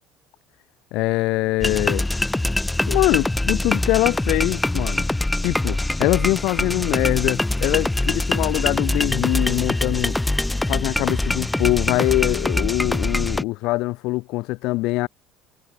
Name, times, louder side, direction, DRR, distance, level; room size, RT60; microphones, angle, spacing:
voice 1, 0.9-2.1 2.9-5.1 5.4-10.2 10.7-15.1, left 21 dB, 60° left, 0.5 m, -23 dB
sound 1, 1.6-13.4, left 1 dB, 5° left, 0.6 m, -23 dB
cardioid pair, 165°, 0 cm